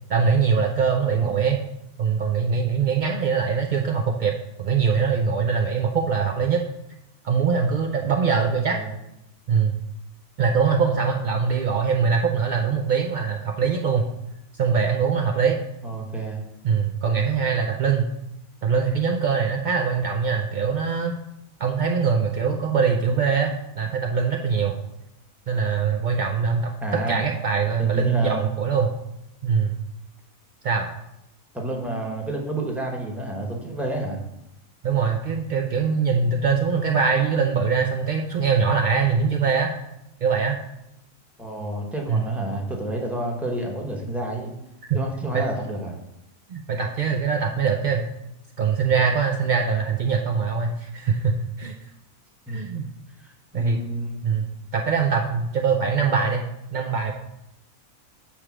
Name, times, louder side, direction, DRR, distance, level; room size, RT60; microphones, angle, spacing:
voice 1, 0.1-1.6 2.0-4.3 4.6-6.6 7.2-8.8 9.5-9.7 10.4-14.1 14.5-15.6 16.6-18.1 18.6-21.1 21.6-24.8 25.5-28.9 29.4-29.7 30.6-30.9 34.8-39.7 40.2-40.6 42.1-42.2 45.3-45.4 46.5-48.1 48.6-51.8 52.5-52.9 53.5-53.8 54.2-56.4 56.7-57.1, right 6 dB, 75° right, 1 dB, 0.4 m, -22 dB
voice 2, 1.0-1.4 8.2-8.4 8.7-8.9 15.8-16.4 26.8-27.2 27.8-28.4 31.5-34.2 41.4-44.5 44.9-46.0 52.5-52.7 53.2-54.2, right 1 dB, ahead, -1 dB, 0.9 m, -30 dB
7.0 x 3.3 x 6.0 m, 0.87 s
omnidirectional pair, 1.5 m